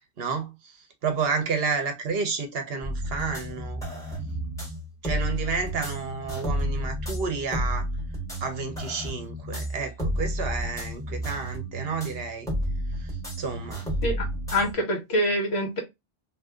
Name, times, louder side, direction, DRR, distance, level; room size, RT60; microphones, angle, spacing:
voice 1, 0.2-3.8 5.0-7.9 8.4-12.5 13.0-13.8, right 5 dB, 60° right, 0.9 m, -31 dB
sound 1, 2.8-14.7, equal, 5° left, 1.3 m, -31 dB
voice 2, 14.5-15.8, equal, 60° left, 1.4 m, -25 dB
2.8 x 2.6 x 3.5 m
omnidirectional pair, 1.2 m